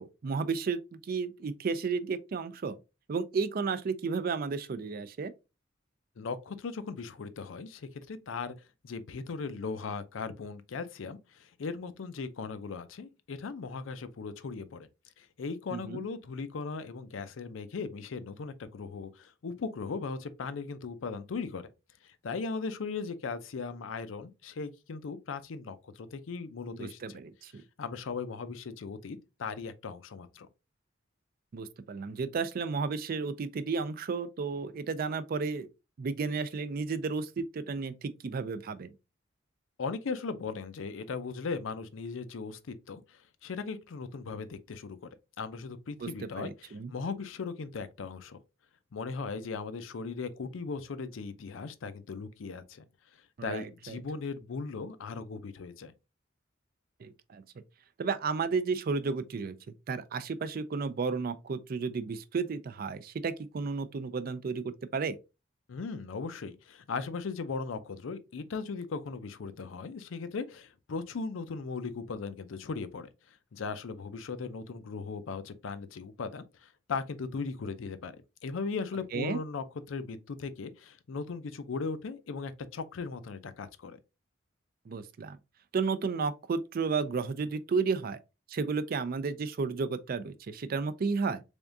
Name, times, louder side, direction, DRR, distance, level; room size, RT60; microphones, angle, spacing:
voice 1, 0.0-2.8 3.1-5.3 15.7-16.0 26.7-27.6 31.5-35.7 36.0-38.9 46.0-46.9 53.4-54.0 57.0-57.4 58.0-59.6 59.9-65.2 79.1-79.4 84.9-85.4 85.7-88.2 88.5-91.4, right 4 dB, 50° right, 0.4 m, -33 dB
voice 2, 6.2-8.5 8.8-14.9 15.2-21.7 22.0-27.2 27.8-30.5 39.8-45.1 45.4-48.4 48.9-52.8 53.4-55.9 65.7-73.1 73.5-78.1 78.4-84.0, left 4 dB, 85° left, 0.5 m, -38 dB
3.5 x 3.5 x 2.6 m
head